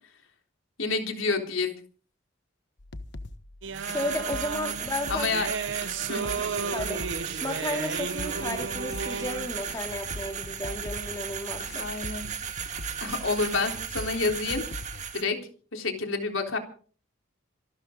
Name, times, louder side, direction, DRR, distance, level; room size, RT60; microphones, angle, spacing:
voice 1, 0.8-1.7 5.1-5.5 6.1-6.2 11.7-12.3 13.0-14.6 15.1-15.4 15.7-16.6, left 3 dB, 80° left, 3 dB, 3.8 m, -28 dB
sound 1, 2.8-15.1, left 2 dB, 60° left, 1.2 m, -42 dB
sound 2, 3.6-9.7, right 5 dB, 60° right, 0.7 m, -34 dB
sound 3, 3.7-15.2, right 8 dB, 35° right, 1.8 m, -36 dB
voice 2, 3.9-5.3 6.2-6.4 6.7-7.1 7.4-11.9, left 1 dB, 20° left, 3 dB, 3.0 m, -33 dB
26.5 x 12.5 x 3.9 m, 0.43 s
head